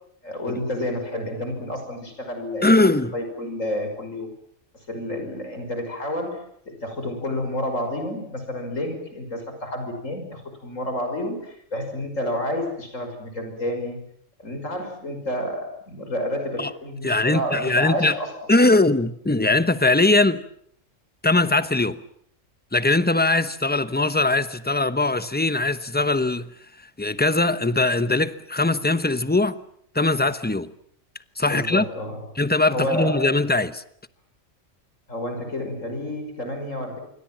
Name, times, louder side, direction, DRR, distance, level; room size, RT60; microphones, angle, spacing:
voice 1, 0.2-4.3 4.9-14.0 14.4-18.3 31.5-32.2 32.7-33.4 35.1-37.0, left 1 dB, 70° left, 6.1 m, -30 dB
voice 2, 2.6-3.1 16.6-16.7 17.0-18.1 18.5-20.4 21.2-22.0 22.7-26.5 27.0-29.6 29.9-30.7 31.4-31.9 32.4-33.8, left 2 dB, 10° left, 0.9 m, -21 dB
27.0 x 24.0 x 7.5 m
omnidirectional pair, 1.4 m